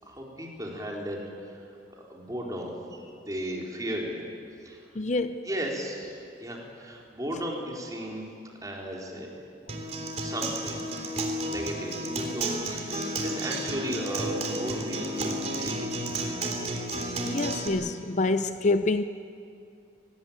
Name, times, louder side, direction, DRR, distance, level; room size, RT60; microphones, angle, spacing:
voice 1, 0.0-1.7 2.1-4.2 4.6-4.9 5.4-8.3 8.6-9.4 10.2-10.8 11.5-16.6, equal, 20° right, -2 dB, 4.3 m, -35 dB
voice 2, 4.9-5.4 17.2-19.0, left 2 dB, 40° left, 10 dB, 0.6 m, -26 dB
Acoustic guitar, 9.7-17.7, right 1 dB, 40° right, 3.4 m, -32 dB
25.5 x 19.5 x 9.0 m, 2.5 s
head